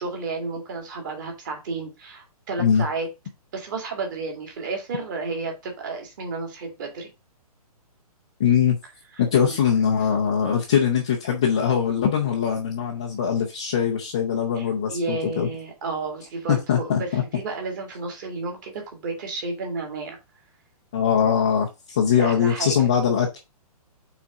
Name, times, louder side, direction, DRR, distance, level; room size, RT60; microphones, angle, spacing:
voice 1, 0.0-3.1 3.5-7.1 9.4-9.6 14.6-20.2 22.1-22.8, right 3 dB, 30° right, 2.2 m, -32 dB
voice 2, 8.4-8.8 9.2-15.5 16.5-17.2 20.9-23.4, left 7 dB, 10° left, 0.3 m, -22 dB
6.0 x 4.0 x 5.3 m
hypercardioid pair, 175°, 20 cm